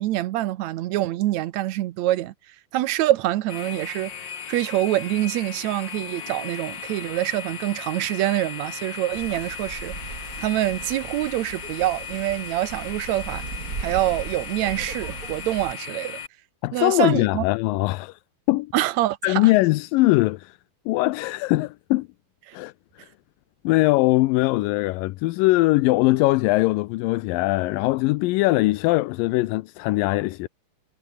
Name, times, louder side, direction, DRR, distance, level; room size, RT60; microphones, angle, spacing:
voice 1, 0.0-13.4 13.8-16.2 16.7-17.4 18.7-19.5 22.5-22.6, right 15 dB, 80° right, 1.6 m, -25 dB
sound 1, 3.5-16.3, left 7 dB, 45° left, 1.7 m, -37 dB
Wind, 9.1-15.7, right 4 dB, 30° right, 2.3 m, -38 dB
voice 2, 16.6-18.2 18.5-18.7 19.2-20.6 20.9-22.1 22.5-23.1 23.6-30.5, left 20 dB, 80° left, 2.2 m, -21 dB
omnidirectional pair, 4.2 m